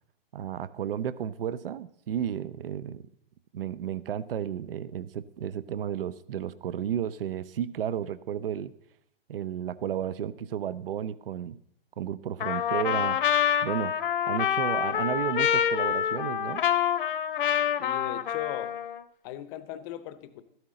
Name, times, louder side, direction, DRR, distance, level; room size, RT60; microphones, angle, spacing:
voice 1, 0.3-3.0 3.5-8.7 9.3-11.6 12.0-13.2 13.6-13.9 14.3-16.6, right 9 dB, 70° right, 17 dB, 0.7 m, -33 dB
Trumpet, 12.4-19.0, left 9 dB, 60° left, 0.8 m, -27 dB
voice 2, 17.8-18.7 19.2-20.4, left 11 dB, 20° left, 13 dB, 0.7 m, -38 dB
13.0 x 12.5 x 3.8 m, 0.72 s
hypercardioid pair, 150°, 30 cm